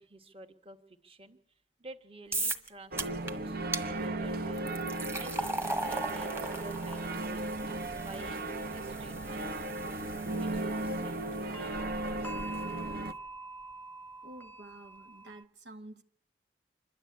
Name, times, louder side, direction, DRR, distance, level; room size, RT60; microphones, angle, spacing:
voice 1, 0.0-1.4 1.8-4.7 5.2-7.5 8.0-8.4 8.7-9.6 10.3-12.7, right 2 dB, 35° right, 1.6 m, -51 dB
sound 1, 2.3-2.7 3.0-3.3 3.7-3.9 4.5-11.7, right 2 dB, 15° right, 1.5 m, -38 dB
sound 2, 2.9-13.1, right 2 dB, 60° right, 0.9 m, -36 dB
sound 3, 9.2-9.3 11.5-15.4, right 3 dB, 10° left, 0.9 m, -44 dB
voice 2, 14.2-16.0, right 1 dB, 85° right, 1.2 m, -50 dB
26.5 x 11.5 x 8.7 m
head